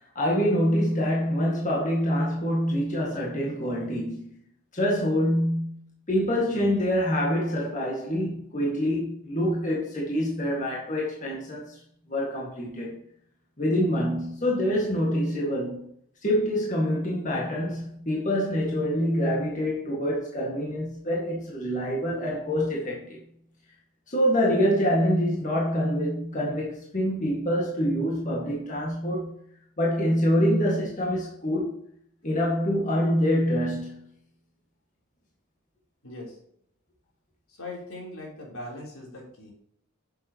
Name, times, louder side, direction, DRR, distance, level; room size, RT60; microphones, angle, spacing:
voice 1, 0.2-4.3 4.7-5.8 6.1-11.8 12.1-12.9 13.6-15.9 16.2-23.2 24.1-29.3 29.8-31.8 32.2-34.1, equal, 35° left, 1.8 m, -26 dB
voice 2, 36.0-36.4 37.5-39.5, left 2 dB, 80° left, 3.5 m, -40 dB
9.9 x 6.8 x 3.0 m
head